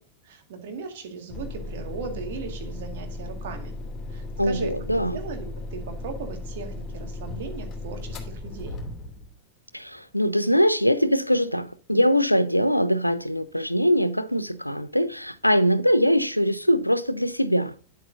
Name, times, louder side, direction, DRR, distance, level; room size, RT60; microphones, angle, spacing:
voice 1, 0.3-3.7 4.1-4.8 5.1-8.8, right 5 dB, 55° right, 2.0 m, -38 dB
sound 1, 1.3-9.3, left 2 dB, 25° left, 2.7 m, -36 dB
voice 2, 4.4-5.2 9.7-17.7, equal, 90° left, 0.5 m, -22 dB
9.3 x 8.0 x 2.7 m
figure-of-eight pair, 90°, 0 cm